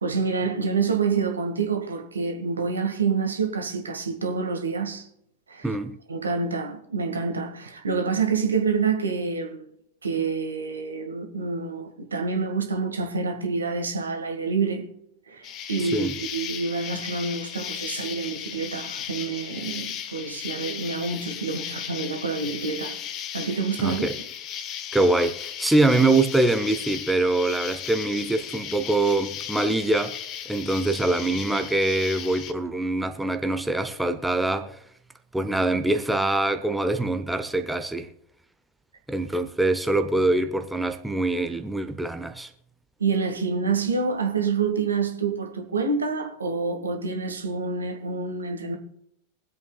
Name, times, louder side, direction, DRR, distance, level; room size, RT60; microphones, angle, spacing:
voice 1, 0.0-5.1 5.5-5.7 6.1-9.7 10.0-14.9 15.3-23.0 23.3-24.1 43.0-48.8, right 5 dB, 75° right, 1.7 m, -27 dB
voice 2, 5.6-6.0 15.8-16.2 23.8-24.2 24.9-30.2 30.5-34.8 35.3-38.1 39.1-42.5, right 2 dB, 5° right, 0.8 m, -24 dB
Insect, 15.4-32.5, left 10 dB, 35° left, 0.9 m, -36 dB
23.5 x 8.1 x 2.3 m
figure-of-eight pair, 90°, 0 cm